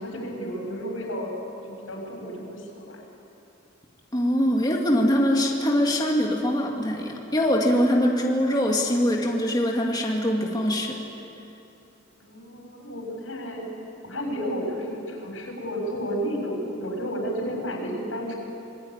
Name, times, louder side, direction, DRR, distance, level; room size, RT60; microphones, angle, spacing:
voice 1, 0.0-1.3 1.6-3.0 12.2-13.6 14.0-18.3, equal, 90° left, 1 dB, 6.7 m, -32 dB
voice 2, 4.1-11.0, equal, 20° left, -1 dB, 2.3 m, -23 dB
26.0 x 20.5 x 9.7 m, 2.8 s
head